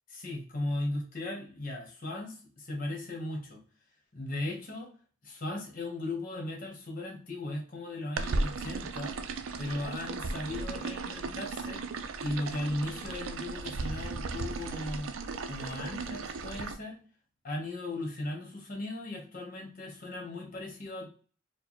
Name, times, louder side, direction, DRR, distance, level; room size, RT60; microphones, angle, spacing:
voice 1, 0.1-3.6 4.1-4.9 5.2-9.1 9.6-11.8 12.2-15.1 15.5-17.0 17.4-21.1, left 1 dB, 45° left, 1 dB, 1.1 m, -37 dB
sound 1, 8.2-16.7, right 3 dB, 80° right, 0.5 m, -36 dB
4.5 x 2.2 x 2.9 m, 0.42 s
head